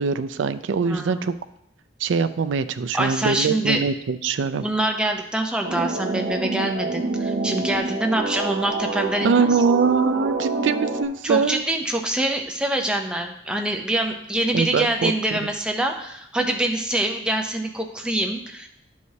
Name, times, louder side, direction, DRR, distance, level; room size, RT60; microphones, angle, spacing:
voice 1, 0.0-1.3 2.0-4.7 9.2-11.6 14.5-15.1 15.4-15.5, right 5 dB, 80° right, 11 dB, 0.4 m, -22 dB
voice 2, 0.9-1.3 2.9-3.8 4.6-9.5 11.2-18.7, right 1 dB, 5° right, 3 dB, 0.5 m, -25 dB
sound 1, 5.6-11.1, right 3 dB, 65° right, 0.7 m, -27 dB
11.5 x 4.8 x 2.8 m, 0.75 s
head